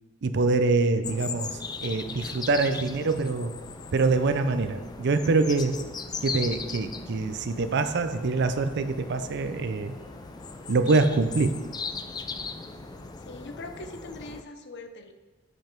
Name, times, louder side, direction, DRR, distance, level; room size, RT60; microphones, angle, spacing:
voice 1, 0.2-3.5 3.9-5.8 6.2-9.9 10.7-11.6, right 3 dB, 55° right, 9 dB, 0.5 m, -25 dB
sound 1, 1.0-14.4, left 5 dB, 20° left, 0.3 m, -39 dB
sound 2, 3.6-13.1, equal, 90° left, 1.8 m, -51 dB
voice 2, 13.2-15.1, left 2 dB, 55° left, 8 dB, 0.6 m, -41 dB
7.8 x 5.3 x 4.5 m, 1.3 s
head